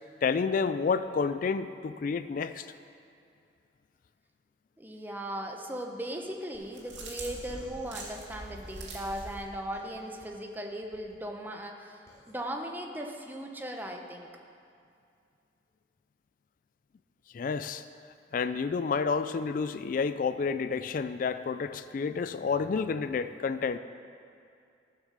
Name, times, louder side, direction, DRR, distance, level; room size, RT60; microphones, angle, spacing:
voice 1, 0.2-2.7 17.3-17.9 18.3-23.8, left 5 dB, 45° left, 11 dB, 0.3 m, -30 dB
voice 2, 4.8-12.0 12.3-14.3, right 1 dB, 10° right, 2 dB, 0.9 m, -38 dB
sound 1, 6.5-9.4, right 2 dB, 75° right, 2.5 m, -43 dB
sound 2, 7.3-8.6 9.7-10.3 10.8-11.2 12.1-12.3, equal, 15° left, 2.6 m, -56 dB
14.5 x 6.6 x 6.6 m, 2.5 s
head